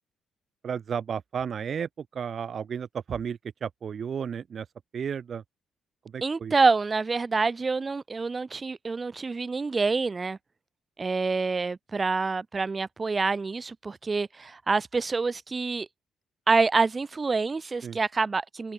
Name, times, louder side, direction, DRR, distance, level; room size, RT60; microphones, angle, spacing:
voice 1, 0.6-4.6 4.9-5.4 6.1-6.5 17.8-18.0, right 7 dB, 50° right, 5.7 m, -33 dB
voice 2, 6.2-10.4 11.0-15.9 16.5-18.7, right 4 dB, 30° right, 7.6 m, -26 dB
open air
cardioid pair, 90°, 0 cm